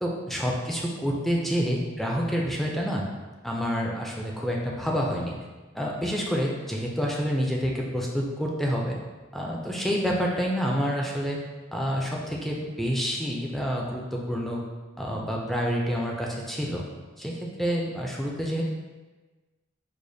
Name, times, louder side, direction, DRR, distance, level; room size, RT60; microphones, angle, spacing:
voice 1, 0.0-3.0 3.4-5.4 5.7-9.0 9.3-11.4 11.7-14.6 15.0-16.8 17.2-18.6, equal, ahead, -2 dB, 0.3 m, -28 dB
4.8 x 2.1 x 2.6 m, 1.3 s
head